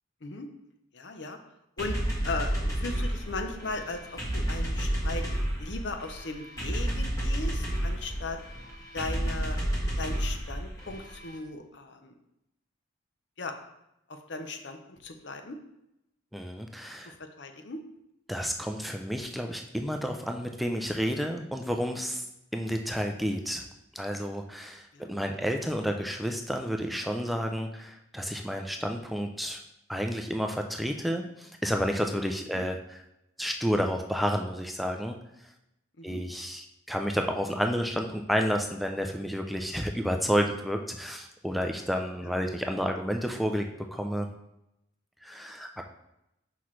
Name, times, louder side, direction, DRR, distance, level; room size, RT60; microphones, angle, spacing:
voice 1, 0.9-1.4 1.8-2.0 2.2-5.2 5.6-8.4 8.9-9.6 10.0-12.1 13.4-13.5 14.1-15.6 17.0-17.8 22.7-22.8 24.9-25.1 36.0-36.2 42.2-42.3, left 3 dB, 60° left, 6 dB, 0.7 m, -37 dB
sound 1, 1.8-11.3, right 1 dB, 20° left, 1.7 m, -31 dB
voice 2, 16.3-17.1 18.3-22.2 22.5-23.6 23.9-29.6 29.9-33.0 33.4-35.2 36.0-43.7 43.9-44.3 45.2-45.8, equal, ahead, 3 dB, 0.4 m, -30 dB
6.0 x 5.8 x 3.1 m, 0.85 s
head